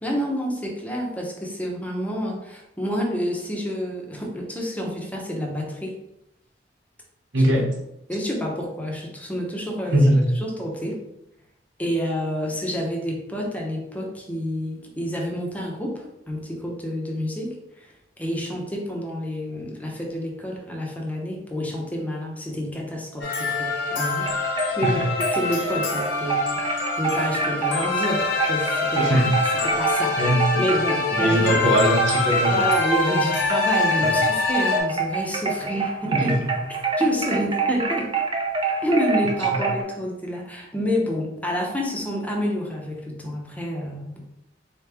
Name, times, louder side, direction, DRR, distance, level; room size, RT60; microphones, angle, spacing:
voice 1, 0.0-5.9 7.4-7.5 8.1-10.0 10.3-11.0 11.8-24.3 24.5-25.0 25.3-26.5 26.9-29.3 29.6-30.2 30.6-31.5 32.4-36.4 37.0-38.1 38.8-44.2, equal, 10° left, -1 dB, 0.7 m, -28 dB
voice 2, 7.3-7.7 9.9-10.2 24.8-25.1 29.0-29.3 30.2-30.7 31.1-32.6 34.0-34.1 36.1-36.4, equal, 75° right, -1 dB, 0.9 m, -20 dB
sound 1, 23.2-34.8, left 3 dB, 70° left, 0.9 m, -25 dB
sound 2, 24.2-31.4 31.7-39.8, right 4 dB, 25° right, 0.5 m, -26 dB
3.9 x 3.1 x 3.4 m, 0.84 s
head